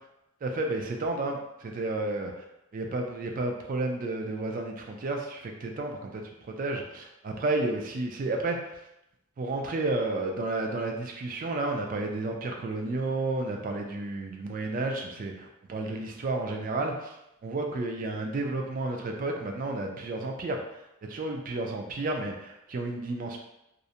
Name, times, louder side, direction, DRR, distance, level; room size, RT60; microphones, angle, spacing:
voice 1, 0.4-2.4 2.7-8.7 9.4-17.2 17.4-20.6 21.0-23.4, right 2 dB, 40° right, 2 dB, 0.3 m, -31 dB
2.5 x 2.1 x 2.7 m, 0.85 s
head